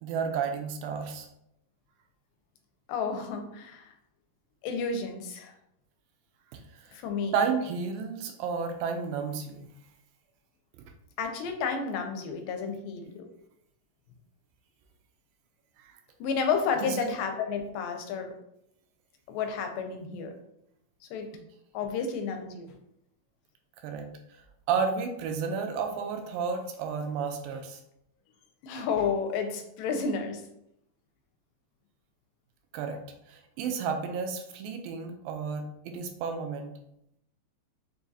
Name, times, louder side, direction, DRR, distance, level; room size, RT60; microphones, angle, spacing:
voice 1, 0.0-1.3 7.3-9.7 15.8-15.9 16.8-17.2 23.8-24.1 24.7-27.8 32.7-33.0 33.3-36.7, right 6 dB, 90° right, 5 dB, 2.3 m, -31 dB
voice 2, 2.9-3.9 4.6-5.5 6.9-7.3 11.2-13.2 16.2-18.3 19.3-20.3 21.1-21.3 21.7-22.7 28.6-30.4, left 5 dB, 85° left, 5 dB, 2.3 m, -31 dB
6.0 x 2.3 x 2.7 m, 0.78 s
omnidirectional pair, 4.0 m